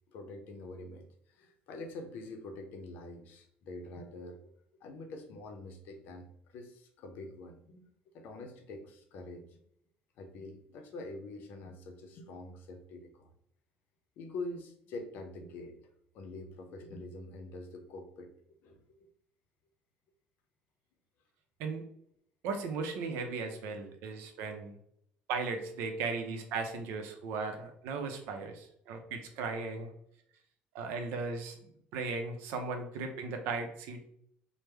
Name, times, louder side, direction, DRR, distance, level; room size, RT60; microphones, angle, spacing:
voice 1, 0.1-4.4 4.8-7.9 8.1-9.6 10.2-13.3 14.2-15.8 16.1-18.3 18.6-19.1, left 2 dB, 55° left, 5 dB, 0.6 m, -45 dB
voice 2, 22.4-24.7 25.3-29.9 30.7-31.6 31.9-34.0, right 4 dB, 90° right, 5 dB, 0.6 m, -37 dB
3.2 x 2.1 x 3.3 m, 0.69 s
cardioid pair, 175°, 4 cm